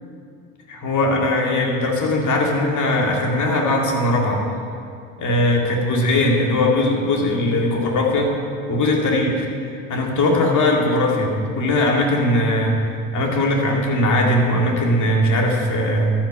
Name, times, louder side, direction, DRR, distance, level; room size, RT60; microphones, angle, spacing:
voice 1, 0.7-4.4 5.2-8.3 8.7-12.8 13.1-16.1, left 1 dB, 45° left, 0 dB, 2.3 m, -19 dB
13.0 x 6.2 x 5.5 m, 2.3 s
hypercardioid pair, 70°, 41 cm